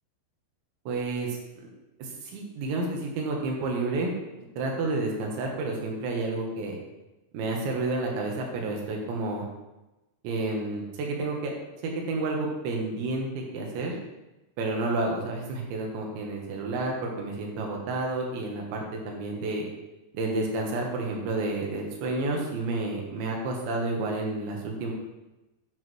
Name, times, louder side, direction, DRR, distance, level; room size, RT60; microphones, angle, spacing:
voice 1, 0.9-1.7 2.0-4.1 4.4-6.8 7.3-9.5 10.2-11.5 11.8-13.9 14.6-19.7 20.1-24.9, right 2 dB, 75° right, 0 dB, 3.7 m, -30 dB
9.8 x 7.9 x 3.2 m, 1.0 s
omnidirectional pair, 5.4 m